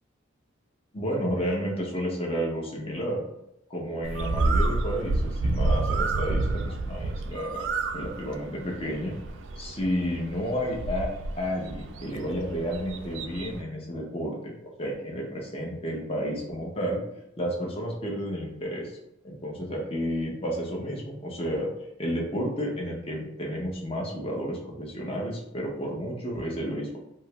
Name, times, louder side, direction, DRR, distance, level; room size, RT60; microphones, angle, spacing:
voice 1, 0.9-3.2 3.7-7.6 7.9-9.1 9.6-11.1 11.4-17.0 17.4-19.0 19.2-21.7 22.0-27.0, equal, 30° left, -2 dB, 0.6 m, -31 dB
Bird, 4.0-13.6, right 2 dB, 65° right, 0.3 m, -29 dB
2.8 x 2.3 x 3.0 m, 0.83 s
head